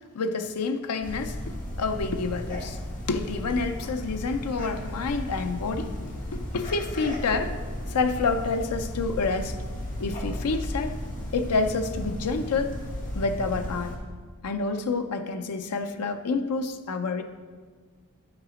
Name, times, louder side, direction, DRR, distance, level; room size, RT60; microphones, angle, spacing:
voice 1, 0.1-1.4 1.8-2.8 3.1-9.6 10.0-10.9 11.3-12.8 13.1-14.0 14.4-17.2, left 4 dB, 90° left, 7 dB, 0.5 m, -28 dB
sound 1, 1.0-14.0, equal, 35° left, 1.5 m, -35 dB
10.5 x 4.9 x 4.9 m, 1.5 s
head